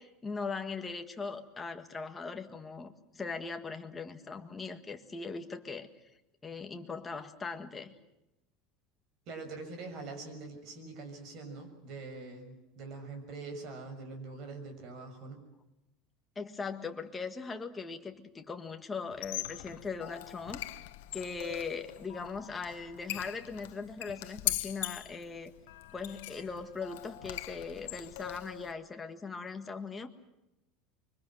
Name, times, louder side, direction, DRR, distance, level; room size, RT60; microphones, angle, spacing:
voice 1, 0.0-5.9 6.4-7.9 16.3-20.8 21.1-25.5 25.9-30.1, left 4 dB, 15° left, 6 dB, 1.6 m, -40 dB
voice 2, 9.3-15.4, right 3 dB, 40° right, 5 dB, 6.4 m, -44 dB
Squeak, 19.1-28.7, left 16 dB, 90° left, 1.1 m, -41 dB
25.0 x 24.0 x 7.7 m, 0.90 s
cardioid pair, 165°, 0 cm